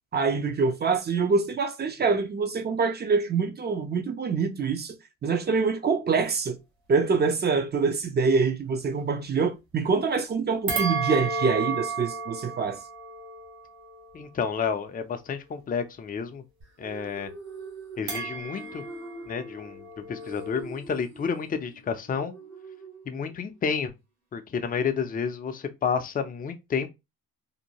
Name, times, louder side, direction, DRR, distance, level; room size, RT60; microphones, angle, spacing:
voice 1, 0.1-5.0 5.2-6.6 6.9-12.8, right 4 dB, 30° right, 0.5 m, -25 dB
sound 1, 10.7-15.2 18.1-20.6, right 4 dB, 80° right, 0.9 m, -33 dB
voice 2, 14.1-16.4 16.8-17.3 18.0-18.8 19.3-22.3 23.1-23.9 24.3-26.9, left 6 dB, 25° left, 0.4 m, -30 dB
sound 2, 16.6-23.6, right 3 dB, 60° right, 1.5 m, -44 dB
2.7 x 2.1 x 2.8 m
cardioid pair, 80°, 36 cm